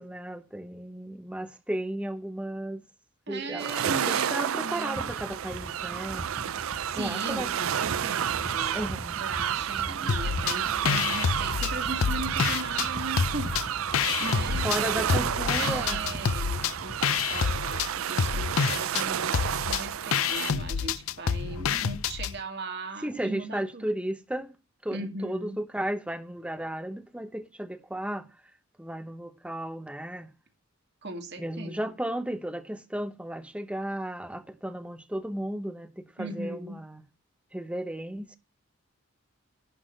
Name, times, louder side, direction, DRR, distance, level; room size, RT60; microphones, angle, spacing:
voice 1, 0.0-2.8 3.3-6.2 7.0-7.5 8.7-9.2 14.6-16.3 21.5-21.7 23.0-24.5 24.8-28.3 28.8-30.3 31.4-37.0 37.5-38.4, right 1 dB, 5° right, 0.9 m, -34 dB
voice 2, 3.3-5.0 6.6-8.9 9.2-13.5 13.8-15.2 15.5-23.9 24.9-25.6 31.0-31.9 36.2-36.8, right 2 dB, 55° right, 2.2 m, -38 dB
sound 1, 3.6-20.5, right 9 dB, 80° right, 0.4 m, -31 dB
sound 2, 4.9-17.6, equal, 30° right, 1.5 m, -41 dB
sound 3, 10.1-10.6 10.9-12.9 13.2-14.8 15.1-22.3, left 6 dB, 85° left, 0.5 m, -28 dB
11.5 x 3.9 x 7.7 m
head